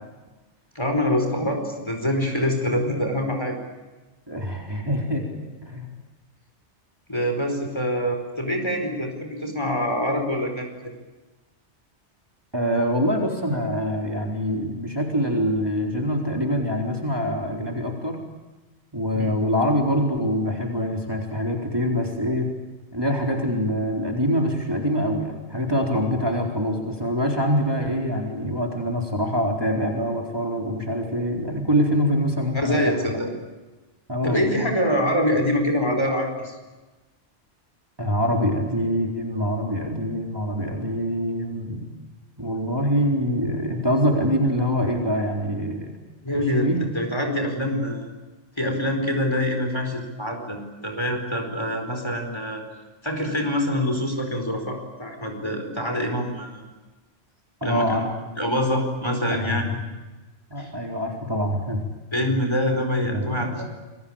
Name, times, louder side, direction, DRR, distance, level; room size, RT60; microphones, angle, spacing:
voice 1, 0.7-3.6 7.1-11.0 19.1-19.4 32.5-33.3 34.2-36.6 46.2-48.1 48.6-50.6 50.8-52.6 53.0-56.6 57.6-58.0 58.4-59.6 60.6-60.7 62.1-63.7, equal, 25° left, 3 dB, 4.7 m, -25 dB
voice 2, 4.3-5.9 12.5-18.2 18.9-22.5 22.9-33.1 34.1-34.7 38.0-41.9 42.4-45.9 46.3-46.9 57.6-58.0 59.3-59.8 60.5-61.8 63.0-63.7, equal, 20° right, 1 dB, 4.1 m, -25 dB
28.5 x 22.0 x 8.9 m, 1.2 s
omnidirectional pair, 1.2 m